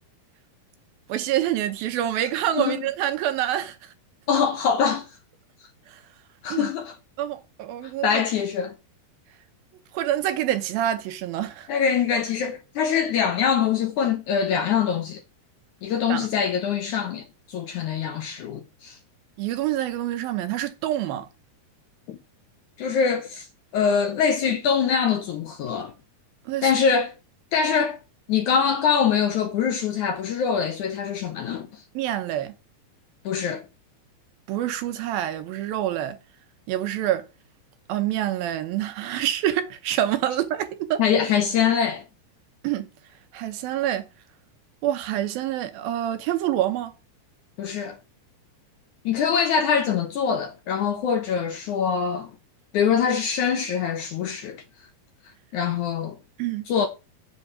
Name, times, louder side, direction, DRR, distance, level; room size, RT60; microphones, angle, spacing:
voice 1, 1.1-3.9 5.9-6.0 6.5-6.7 7.2-8.2 9.9-11.7 16.1-16.3 19.4-21.3 26.5-26.8 32.0-32.5 34.5-36.2 36.7-37.3 37.9-41.0 42.6-42.8 43.3-44.1 44.8-46.9 56.4-56.7, right 12 dB, 75° right, 2.5 m, -26 dB
voice 2, 4.3-5.1 6.4-7.0 8.0-8.7 11.7-15.2 15.8-19.0 22.1-22.2 22.8-23.5 23.7-25.9 26.6-27.1 27.5-28.0 28.3-31.7 33.3-33.6 41.0-42.0 47.6-48.0 49.1-52.3 52.7-54.6 55.5-56.2 56.7-56.9, left 7 dB, 70° left, 2.0 m, -23 dB
8.1 x 7.2 x 6.0 m
omnidirectional pair, 4.6 m